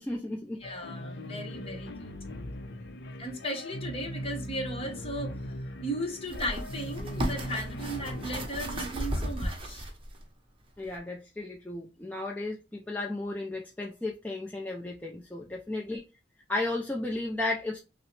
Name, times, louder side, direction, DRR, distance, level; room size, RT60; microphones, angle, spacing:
voice 1, 0.0-0.6 10.8-16.0 16.5-17.8, left 2 dB, 10° left, 0.4 m, -34 dB
sound 1, 0.6-8.5, equal, 70° left, 0.5 m, -39 dB
voice 2, 0.6-2.1 3.2-5.3 5.8-9.9, equal, 30° left, 1.0 m, -36 dB
sound 2, 4.4-4.5 6.2-10.2 10.8-11.0, equal, 30° right, 0.8 m, -35 dB
5.4 x 2.0 x 3.1 m
head